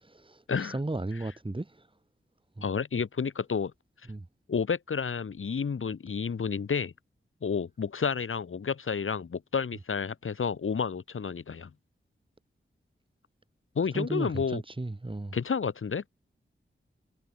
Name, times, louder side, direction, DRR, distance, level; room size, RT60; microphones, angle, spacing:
voice 1, 0.0-1.9 2.6-2.7 4.1-4.3 13.9-15.4, right 2 dB, 25° right, 3.9 m, -35 dB
voice 2, 2.6-3.7 4.5-6.9 7.4-11.7 13.7-14.6 15.3-16.1, left 6 dB, 85° left, 3.4 m, -30 dB
wide cardioid pair, 85°, 21 cm